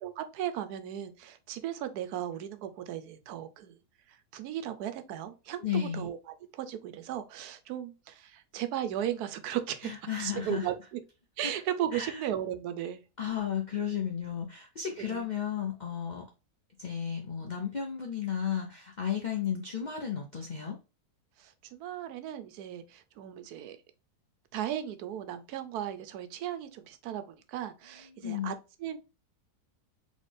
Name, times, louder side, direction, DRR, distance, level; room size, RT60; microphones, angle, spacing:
voice 1, 0.0-3.8 4.3-6.2 6.5-9.9 10.2-11.0 11.4-13.0 15.0-15.3 21.4-23.8 24.5-28.5 28.8-29.0, right 11 dB, 80° right, 1.1 m, -36 dB
voice 2, 5.6-6.1 9.8-10.7 11.4-11.5 11.9-12.2 13.2-16.2 16.8-20.8 28.1-28.5, left 8 dB, 65° left, 0.4 m, -33 dB
4.2 x 3.1 x 3.2 m
omnidirectional pair, 1.7 m